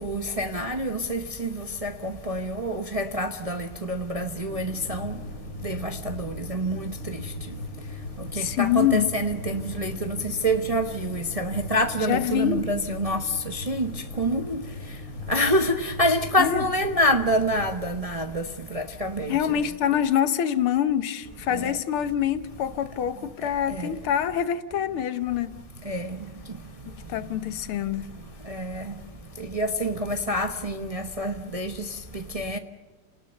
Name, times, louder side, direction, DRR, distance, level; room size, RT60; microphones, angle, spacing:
voice 1, 0.0-5.1 5.6-6.9 8.4-10.2 10.4-13.9 14.2-14.6 15.3-18.4 18.7-19.4 23.8-23.9 25.9-26.1 28.5-28.8 29.5-31.7 32.1-32.6, equal, 25° right, 5 dB, 0.8 m, -27 dB
sound 1, 4.5-17.7, left 2 dB, 35° left, 4.4 m, -38 dB
voice 2, 8.3-9.1 12.1-12.7 16.4-16.6 19.3-25.6 26.9-28.1, left 10 dB, 80° left, 12 dB, 2.0 m, -25 dB
29.0 x 19.5 x 6.7 m, 1.2 s
omnidirectional pair, 2.4 m